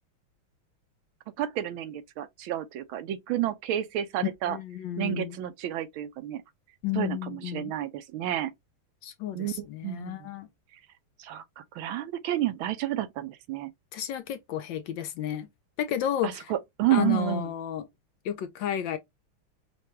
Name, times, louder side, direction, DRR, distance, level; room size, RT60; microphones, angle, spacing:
voice 1, 1.4-4.6 5.0-6.4 7.0-8.5 9.3-10.3 11.2-13.7 16.2-17.5, right 13 dB, 75° right, 1.4 m, -30 dB
voice 2, 4.2-5.4 6.8-7.7 9.0-10.5 13.9-15.5 15.8-16.5 16.9-17.9 18.2-19.0, left 10 dB, 75° left, 1.2 m, -32 dB
5.6 x 2.2 x 3.1 m
omnidirectional pair, 2.3 m